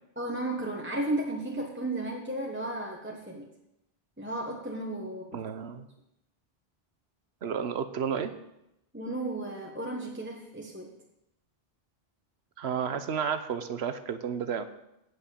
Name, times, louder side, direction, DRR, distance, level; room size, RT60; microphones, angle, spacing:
voice 1, 0.2-3.5 4.2-5.4 8.9-10.9, right 1 dB, 10° right, 0 dB, 1.1 m, -34 dB
voice 2, 5.3-5.9 7.4-8.3 12.6-14.6, right 7 dB, 85° right, 11 dB, 1.1 m, -32 dB
8.1 x 8.0 x 8.6 m, 0.86 s
omnidirectional pair, 1.0 m